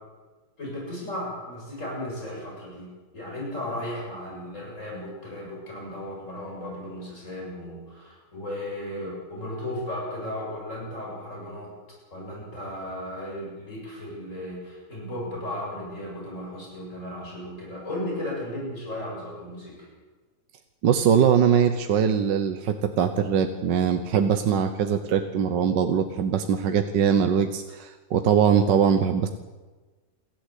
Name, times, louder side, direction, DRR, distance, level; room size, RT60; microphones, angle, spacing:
voice 1, 0.6-11.7 12.1-19.9, left 1 dB, 35° left, -3 dB, 7.8 m, -35 dB
voice 2, 20.8-29.3, right 7 dB, 65° right, 7 dB, 1.6 m, -22 dB
27.5 x 12.0 x 8.3 m, 1.3 s
omnidirectional pair, 2.1 m